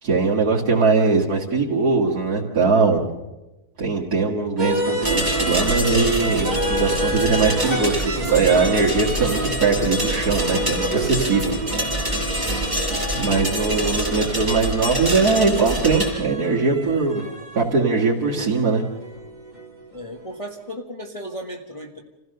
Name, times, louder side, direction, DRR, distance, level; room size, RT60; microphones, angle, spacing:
voice 1, 0.0-3.1 3.8-11.6 12.3-12.7 13.1-17.2 17.5-18.8, right 4 dB, 75° right, -5 dB, 2.6 m, -21 dB
sound 1, 4.6-20.4, right 1 dB, 30° right, 2.9 m, -29 dB
sound 2, 5.0-16.1, equal, 15° right, 5.8 m, -26 dB
voice 2, 19.9-22.0, equal, 20° left, 1 dB, 1.6 m, -35 dB
27.5 x 16.0 x 6.7 m, 1.1 s
omnidirectional pair, 1.6 m